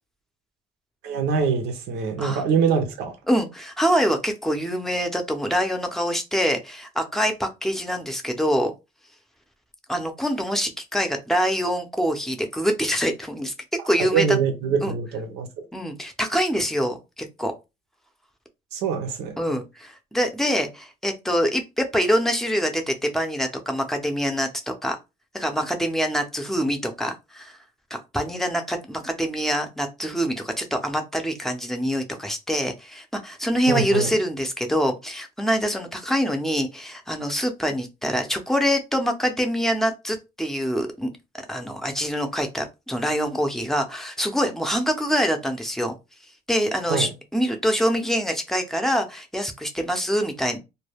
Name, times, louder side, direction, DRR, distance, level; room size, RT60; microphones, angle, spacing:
voice 1, 1.0-3.2 14.1-15.5 18.7-19.4 33.7-34.1 46.9-47.1, right 6 dB, 85° right, 0.7 m, -24 dB
voice 2, 3.3-8.7 9.9-13.5 13.9-14.2 14.8-14.9 15.7-17.5 19.4-25.0 25.3-27.6 27.9-41.1 41.5-45.9 46.5-50.6, equal, ahead, 0.6 m, -25 dB
2.2 x 2.1 x 3.3 m
cardioid pair, 110°, 17 cm